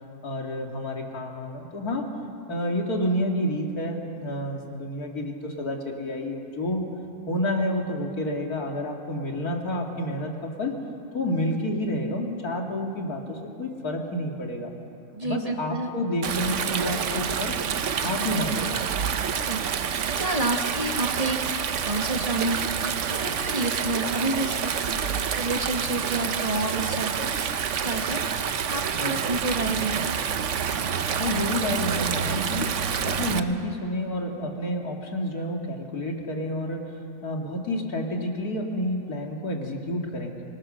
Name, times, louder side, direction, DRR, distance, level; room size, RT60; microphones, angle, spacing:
voice 1, 0.2-2.1 2.5-6.8 7.3-10.8 11.1-14.7 15.2-17.6 18.0-19.0 28.9-29.2 31.2-32.7 33.0-40.3, left 1 dB, 80° left, 1 dB, 2.8 m, -29 dB
voice 2, 15.1-15.9 19.4-19.6 20.1-21.4 21.8-22.6 23.1-25.0 25.3-28.2 28.7-30.2, right 2 dB, 25° right, 2 dB, 1.7 m, -29 dB
Stream, 16.2-33.4, right 7 dB, 60° right, 1.1 m, -28 dB
25.5 x 21.0 x 6.5 m, 2.9 s
omnidirectional pair, 1.6 m